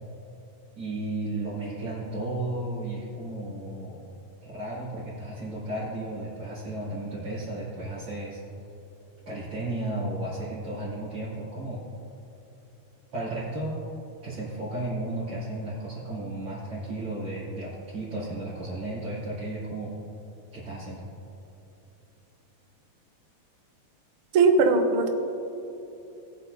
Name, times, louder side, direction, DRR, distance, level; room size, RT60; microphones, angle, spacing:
voice 1, 0.8-4.0 4.4-8.4 9.3-11.8 13.1-13.8 14.2-19.9 20.5-21.0, right 2 dB, 50° right, -13 dB, 3.7 m, -34 dB
voice 2, 24.3-25.1, right 4 dB, 70° right, 5 dB, 1.3 m, -19 dB
19.5 x 8.4 x 2.7 m, 2.9 s
omnidirectional pair, 3.4 m